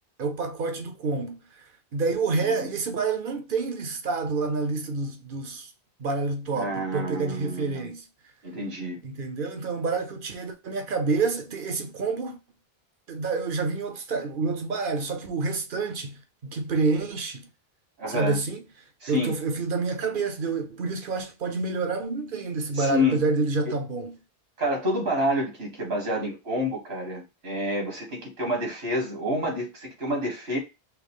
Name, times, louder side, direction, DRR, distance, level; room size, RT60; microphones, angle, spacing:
voice 1, 0.2-1.4 1.9-5.7 6.0-8.0 9.0-12.4 13.1-17.5 18.1-18.6 19.1-24.1, right 4 dB, 60° right, 0.9 m, -28 dB
voice 2, 6.5-7.9 8.4-9.0 18.0-18.4 19.0-19.3 22.7-23.2 23.7-23.8 24.6-30.6, left 1 dB, 80° right, 1.9 m, -28 dB
5.8 x 2.0 x 3.5 m
omnidirectional pair, 1.0 m